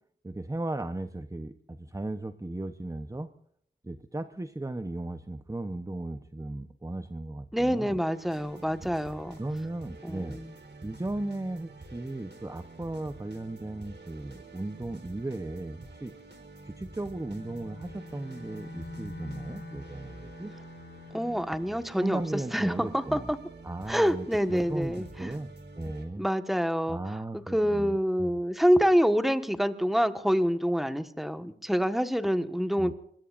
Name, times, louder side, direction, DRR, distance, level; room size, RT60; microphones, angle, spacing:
voice 1, 0.2-3.3 3.8-8.0 9.4-10.4 10.8-16.1 16.6-20.5 22.0-23.3 23.6-25.5 25.8-26.3 26.9-28.3 32.8-32.9, right 2 dB, 15° right, 9 dB, 0.9 m, -36 dB
voice 2, 7.5-9.4 10.0-10.5 21.1-22.2 22.5-23.4 23.9-25.3 26.2-27.2 27.5-32.9, equal, ahead, 9 dB, 1.4 m, -26 dB
sound 1, 8.1-26.1, right 3 dB, 65° right, 4.1 m, -48 dB
Bowed string instrument, 17.1-21.7, left 2 dB, 65° left, 7.0 m, -45 dB
26.0 x 21.5 x 2.6 m, 0.66 s
wide cardioid pair, 65°, 20 cm